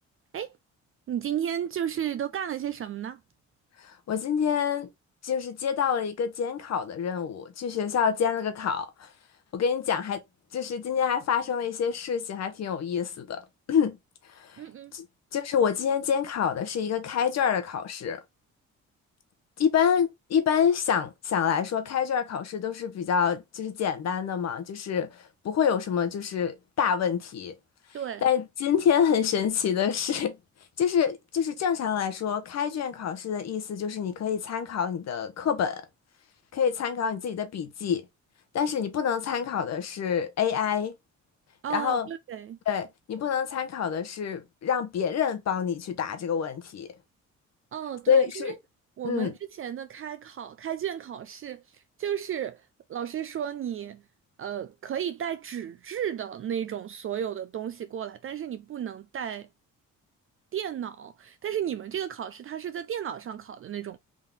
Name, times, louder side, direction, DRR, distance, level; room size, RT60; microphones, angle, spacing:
voice 1, 1.1-3.2 14.6-14.9 27.9-28.3 41.6-42.6 47.7-48.5 49.0-52.6 52.9-54.0 54.4-59.5 60.5-64.0, right 9 dB, 45° right, 0.4 m, -33 dB
voice 2, 3.8-4.9 5.2-9.1 9.5-10.2 10.5-13.4 13.7-14.0 14.3-14.6 14.9-15.1 15.3-18.2 19.6-27.5 28.2-30.4 30.8-35.8 36.5-38.1 38.5-40.9 41.7-42.1 42.7-46.9 48.1-48.5 49.0-49.3, left 7 dB, 60° left, 1.0 m, -27 dB
3.7 x 2.7 x 3.6 m
cardioid pair, 90°, 30 cm